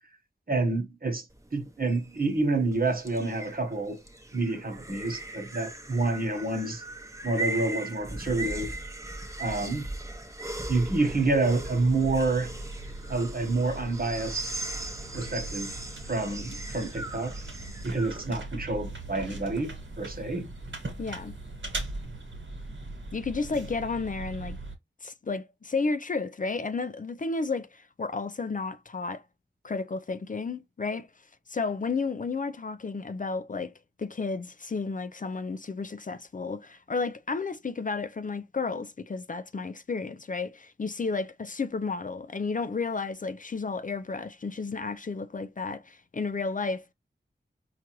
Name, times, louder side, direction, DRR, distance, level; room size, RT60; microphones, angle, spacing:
voice 1, 0.5-1.2 1.5-4.0 4.3-6.8 7.2-8.7 9.4-9.8 10.7-12.5 13.1-14.5 15.1-15.7 16.0-17.3 17.8-20.5, right 3 dB, 45° right, 1.1 m, -28 dB
sound 1, 1.3-18.3, right 2 dB, 15° right, 0.8 m, -39 dB
sound 2, 10.7-24.7, right 2 dB, 70° right, 1.3 m, -40 dB
voice 2, 21.0-21.3 23.1-24.6 25.0-29.2 29.6-31.1 31.5-33.7 34.0-46.9, left 4 dB, 40° left, 0.4 m, -32 dB
4.5 x 2.4 x 3.0 m
wide cardioid pair, 45°, 20 cm